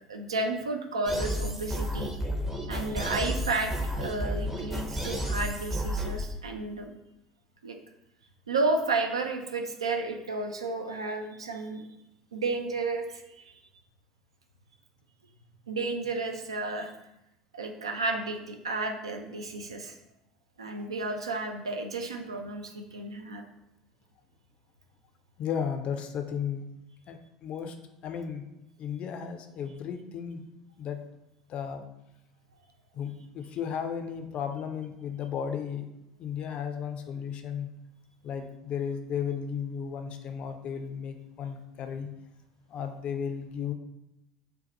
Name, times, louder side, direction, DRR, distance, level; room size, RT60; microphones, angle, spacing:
voice 1, 0.1-2.1 2.7-7.0 7.6-7.8 8.5-11.9 12.3-13.6 15.7-16.9 17.5-20.0 20.6-23.4, right 3 dB, 80° right, 4 dB, 0.3 m, -32 dB
sound 1, 1.1-6.3, equal, 5° right, 0.5 m, -32 dB
voice 2, 25.4-26.6 27.1-27.8 28.0-28.4 28.8-30.4 30.8-31.0 31.5-31.8 32.9-35.9 36.2-37.7 38.2-42.1 42.7-43.7, left 7 dB, 45° left, 6 dB, 0.4 m, -34 dB
2.6 x 2.2 x 4.0 m, 0.86 s
figure-of-eight pair, 65°, 3 cm